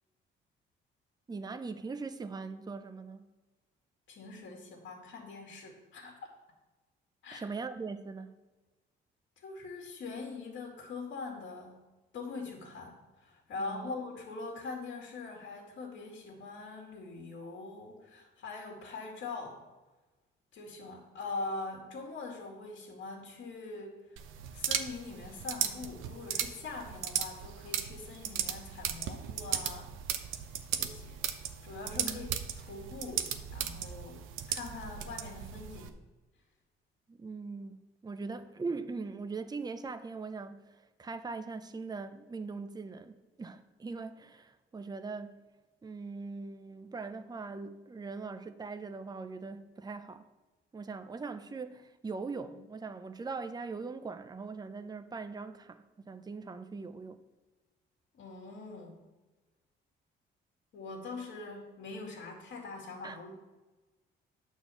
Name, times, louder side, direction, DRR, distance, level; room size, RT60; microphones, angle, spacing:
voice 1, 1.3-3.3 7.3-8.3 13.6-13.9 32.0-32.2 37.1-37.8 38.0-40.7 41.0-45.4 45.8-50.2 50.7-57.2 63.0-63.2, right 4 dB, 20° right, 0.7 m, -41 dB
voice 2, 4.1-6.2 7.2-7.4 9.4-11.9 12.1-19.6 20.5-24.2 24.5-29.9 30.7-31.2 31.6-35.9 58.1-59.0 60.7-63.3, left 3 dB, 70° left, 2.3 m, -43 dB
sound 1, 24.2-35.9, right 9 dB, 90° right, 0.7 m, -37 dB
9.2 x 4.5 x 7.0 m
cardioid pair, 90°, 20 cm